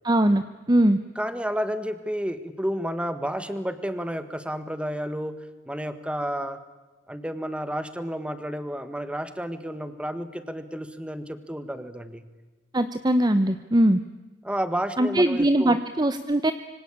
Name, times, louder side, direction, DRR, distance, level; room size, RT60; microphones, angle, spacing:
voice 1, 0.0-0.4 0.7-1.0 12.7-14.0 15.0-16.5, right 1 dB, 20° right, 11 dB, 0.8 m, -21 dB
voice 2, 1.1-5.4 5.6-6.6 7.1-12.2 14.4-15.8, equal, 5° right, 10 dB, 1.7 m, -31 dB
26.0 x 24.5 x 8.7 m, 1.2 s
head